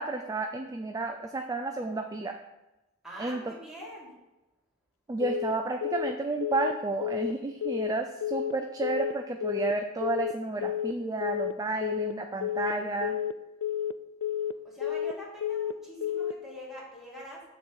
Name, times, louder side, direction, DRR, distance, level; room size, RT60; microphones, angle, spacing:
voice 1, 0.0-2.4 3.2-3.5 5.1-13.2, right 3 dB, 15° right, 4 dB, 0.3 m, -31 dB
voice 2, 3.0-4.1 14.6-17.4, equal, ahead, -5 dB, 2.0 m, -44 dB
Telephone, 5.2-5.5 5.8-6.1 6.4-6.7 7.0-7.3 7.6-7.9 8.2-8.5 8.8-9.1 9.4-9.7 10.0-10.3 10.6-10.9 11.2-11.5 11.8-12.1 12.4-12.7 13.0-13.3 13.6-13.9 14.2-14.5 14.8-15.1 15.4-15.7 16.0-16.3, left 10 dB, 80° left, 0.3 m, -30 dB
6.9 x 3.8 x 6.3 m, 1.0 s
head